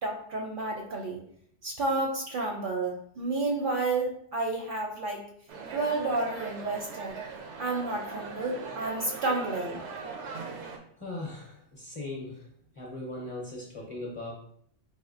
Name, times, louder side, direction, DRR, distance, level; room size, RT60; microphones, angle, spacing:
voice 1, 0.0-1.2 1.6-5.2 5.7-7.2 7.6-9.8, right 2 dB, 60° right, 0 dB, 0.6 m, -31 dB
sound 1, 5.5-10.8, right 4 dB, 85° right, 0.9 m, -40 dB
voice 2, 11.0-12.5 12.7-14.3, left 2 dB, 35° left, -2 dB, 0.6 m, -39 dB
4.2 x 2.6 x 2.6 m, 0.66 s
omnidirectional pair, 1.2 m